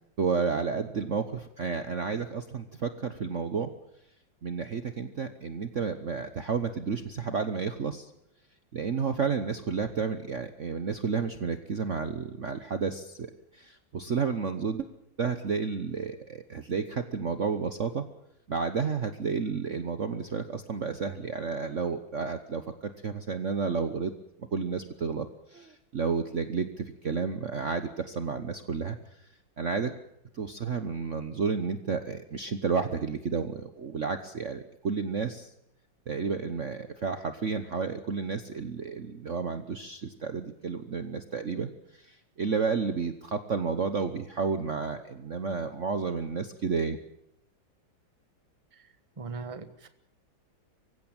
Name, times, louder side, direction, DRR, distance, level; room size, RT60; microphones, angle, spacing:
voice 1, 0.2-3.7 4.4-8.1 8.7-14.9 15.2-18.0 18.5-24.1 24.5-29.3 29.6-29.9 30.3-35.5 36.1-47.0, right 5 dB, 45° right, 9 dB, 1.2 m, -31 dB
voice 2, 48.7-49.9, right 4 dB, 20° right, 11 dB, 1.3 m, -41 dB
24.5 x 16.0 x 8.9 m, 0.78 s
omnidirectional pair, 2.1 m